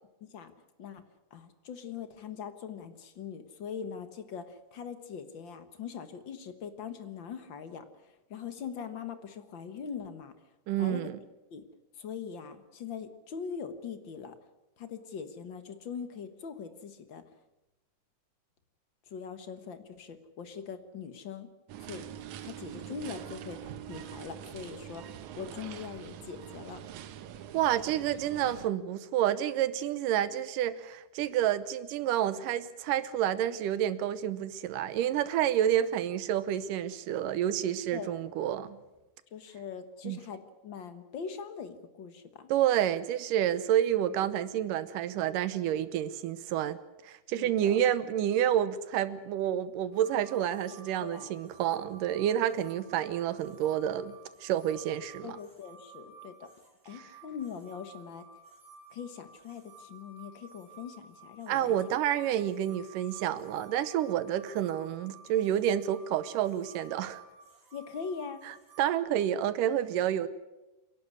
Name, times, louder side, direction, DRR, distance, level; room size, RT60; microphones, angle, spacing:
voice 1, 0.2-0.5 0.8-1.0 1.3-10.3 10.8-11.0 11.5-11.6 12.0-14.3 14.8-17.2 19.1-21.5 21.8-22.1 22.4-26.8 37.9-38.2 39.3-42.5 47.4-47.8 51.0-51.4 55.2-56.5 56.8-58.3 58.9-61.7 67.7-68.4, left 6 dB, 50° left, 10 dB, 1.6 m, -42 dB
voice 2, 10.7-11.2 27.5-38.8 40.0-40.2 42.5-46.8 47.0-54.2 54.4-55.4 61.5-67.2 68.5-70.3, right 11 dB, 90° right, 14 dB, 2.6 m, -29 dB
sound 1, 21.7-28.7, right 10 dB, 70° right, 2.3 m, -44 dB
sound 2, 49.9-69.0, right 3 dB, 50° right, 6.4 m, -54 dB
28.0 x 11.5 x 9.7 m, 1.0 s
omnidirectional pair, 3.7 m